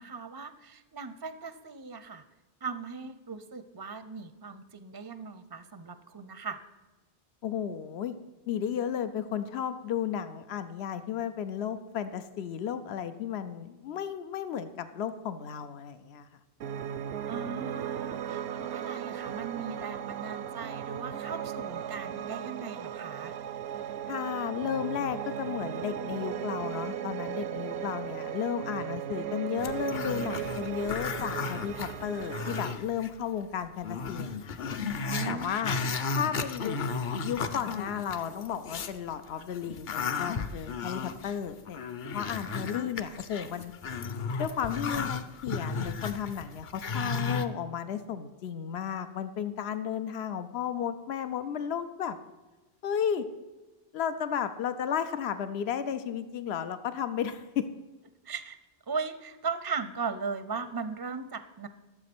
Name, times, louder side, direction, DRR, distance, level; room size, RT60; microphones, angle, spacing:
voice 1, 0.0-2.2 2.6-6.6 17.3-23.3 35.0-35.9 58.3-58.6 58.9-61.7, right 5 dB, 30° right, 12 dB, 0.4 m, -38 dB
voice 2, 7.4-8.1 8.5-16.3 24.1-34.6 35.2-35.8 36.1-36.8 37.2-41.8 42.1-43.7 44.4-52.2 52.8-53.2 53.9-57.6, left 8 dB, 85° left, 11 dB, 0.9 m, -33 dB
Piano, 16.6-32.7, right 10 dB, 85° right, 0.9 m, -36 dB
Growling, 29.6-33.1 33.4-33.5 33.8-39.0 39.4-47.5, left 4 dB, 55° left, 0.8 m, -34 dB
12.5 x 7.3 x 6.0 m, 1.2 s
omnidirectional pair, 1.1 m